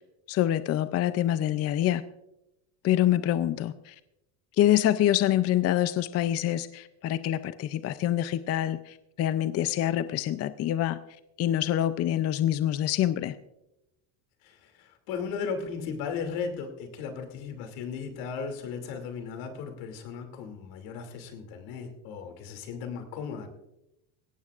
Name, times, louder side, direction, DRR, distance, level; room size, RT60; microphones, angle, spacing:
voice 1, 0.3-2.0 2.8-3.9 4.6-11.0 11.4-13.4, left 12 dB, 35° left, 13 dB, 0.5 m, -26 dB
voice 2, 14.4-23.5, left 6 dB, 75° left, 5 dB, 2.7 m, -36 dB
19.0 x 17.0 x 2.4 m, 0.88 s
cardioid pair, 135°, 47 cm